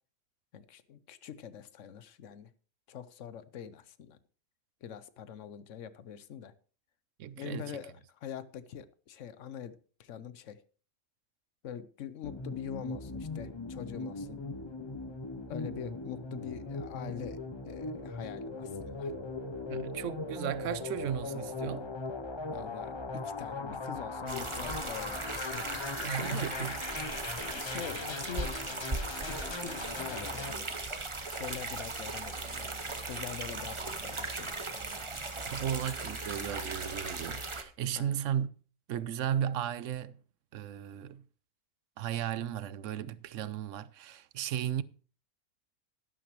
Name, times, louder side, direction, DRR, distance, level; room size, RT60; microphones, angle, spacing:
voice 1, 0.5-2.5 2.9-4.2 4.8-6.5 7.4-10.6 11.6-14.4 15.5-19.1 22.5-26.5 27.5-28.5 29.3-31.0 31.2-32.8 33.0-34.8 37.9-38.1, left 8 dB, 85° left, 1.1 m, -44 dB
voice 2, 7.2-7.7 19.7-21.9 26.0-26.8 35.5-38.5 38.9-40.2 40.5-41.3 42.0-44.8, right 10 dB, 90° right, 1.0 m, -35 dB
sound 1, 12.2-30.5, left 3 dB, 25° left, 0.7 m, -39 dB
sound 2, 24.3-37.6, right 3 dB, 25° right, 1.0 m, -38 dB
12.0 x 11.0 x 3.1 m
omnidirectional pair, 1.2 m